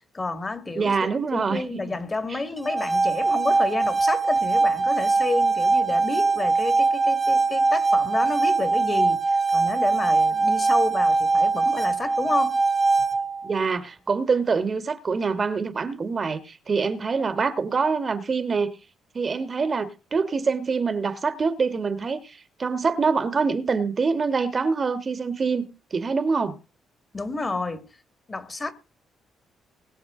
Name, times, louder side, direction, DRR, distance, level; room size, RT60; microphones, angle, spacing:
voice 1, 0.1-12.6 27.1-27.9 28.3-28.7, left 3 dB, 25° left, 2.0 m, -30 dB
voice 2, 0.7-1.9 2.3-2.4 13.4-18.7 19.1-26.6, right 5 dB, 40° right, 1.5 m, -25 dB
sound 1, 2.6-13.5, right 3 dB, 15° right, 0.8 m, -22 dB
21.0 x 7.5 x 3.8 m
cardioid pair, 90°, 0 cm